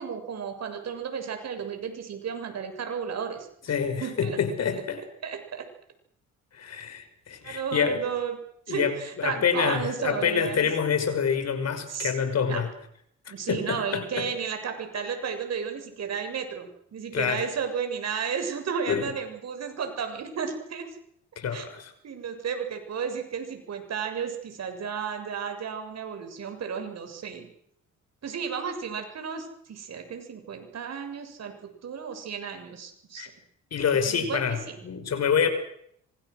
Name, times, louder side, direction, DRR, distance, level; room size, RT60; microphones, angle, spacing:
voice 1, 0.0-3.5 4.0-4.4 5.2-5.7 7.4-8.4 8.7-10.7 11.9-12.1 12.5-12.6 13.3-20.9 21.5-21.7 22.0-27.5 28.2-33.3 34.0-34.8, right 6 dB, 60° right, 6 dB, 7.2 m, -33 dB
voice 2, 3.7-5.0 6.5-8.0 8.7-12.7 13.3-14.3 17.1-17.5 18.9-19.1 21.4-21.9 33.2-33.3 33.7-35.5, left 7 dB, 55° left, 9 dB, 5.8 m, -27 dB
27.0 x 25.5 x 6.5 m, 0.70 s
cardioid pair, 90°, 30 cm